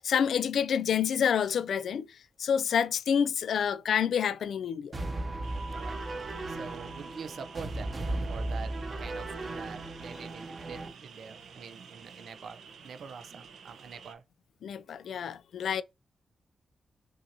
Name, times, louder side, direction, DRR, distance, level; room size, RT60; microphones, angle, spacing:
voice 1, 0.0-2.1 2.4-4.9 14.6-15.8, left 8 dB, 80° left, 0.3 m, -28 dB
sound 1, 4.9-10.9, right 2 dB, 35° right, 0.9 m, -36 dB
sound 2, 5.4-14.1, right 6 dB, 90° right, 0.9 m, -51 dB
voice 2, 5.7-14.2, right 6 dB, 75° right, 0.5 m, -46 dB
6.0 x 2.6 x 2.8 m
wide cardioid pair, 115°, 0 cm